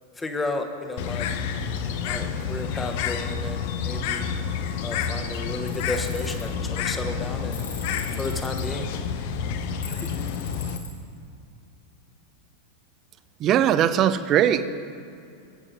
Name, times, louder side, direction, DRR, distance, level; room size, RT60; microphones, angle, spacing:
voice 1, 0.2-1.3 2.1-4.3 4.8-7.6 8.1-8.9 10.0-10.1, left 2 dB, 15° left, 5 dB, 1.1 m, -33 dB
Bird, 1.0-10.8, left 6 dB, 50° left, 0.7 m, -29 dB
Tools, 5.7-6.4 7.5-8.6 9.8-10.9, left 4 dB, 70° left, 2.5 m, -40 dB
voice 2, 13.4-14.7, right 10 dB, 35° right, 12 dB, 0.5 m, -20 dB
20.0 x 9.7 x 2.7 m, 2.6 s
figure-of-eight pair, 90°, 0 cm